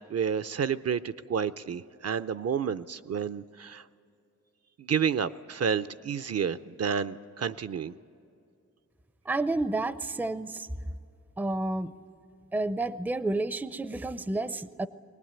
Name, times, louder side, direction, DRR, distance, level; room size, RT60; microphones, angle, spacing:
voice 1, 0.1-3.8 4.8-7.9, right 7 dB, 55° right, 12 dB, 0.5 m, -30 dB
voice 2, 9.3-10.7 11.4-11.9 12.5-14.9, right 2 dB, 5° right, 14 dB, 0.4 m, -30 dB
22.5 x 19.0 x 8.8 m, 2.5 s
wide cardioid pair, 125°, 29 cm